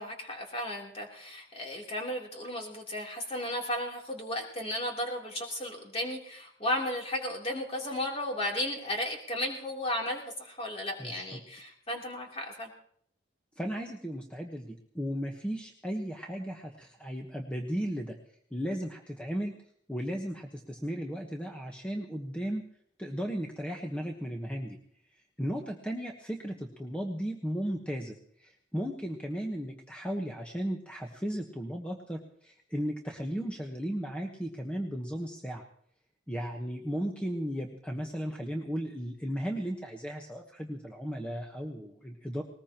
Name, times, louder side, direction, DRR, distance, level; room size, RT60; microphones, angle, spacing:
voice 1, 0.0-12.7, left 1 dB, 35° left, -1 dB, 3.3 m, -34 dB
voice 2, 11.0-11.4 13.6-18.2 18.5-19.5 19.9-22.6 23.0-24.8 25.1-35.6 36.3-42.4, equal, 5° left, 1 dB, 1.2 m, -35 dB
20.0 x 20.0 x 3.0 m, 0.65 s
head